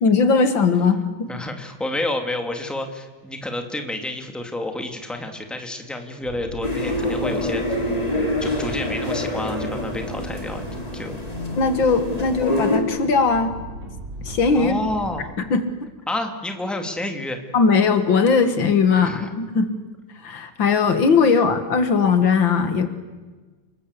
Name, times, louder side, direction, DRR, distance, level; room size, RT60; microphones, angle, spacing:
voice 1, 0.0-1.3 11.6-13.5 14.2-14.7 15.5-15.6 17.5-19.7 20.2-22.9, left 5 dB, 75° left, 9 dB, 2.4 m, -19 dB
voice 2, 1.3-7.8 8.4-10.6 10.9-11.2 14.5-15.3 16.1-17.4 18.9-19.3, left 1 dB, ahead, 4 dB, 2.3 m, -29 dB
sound 1, 6.2-15.2, right 1 dB, 65° right, 6.7 m, -37 dB
sound 2, 6.6-12.8, left 1 dB, 20° left, 3.5 m, -26 dB
30.0 x 20.5 x 8.3 m, 1.3 s
omnidirectional pair, 2.1 m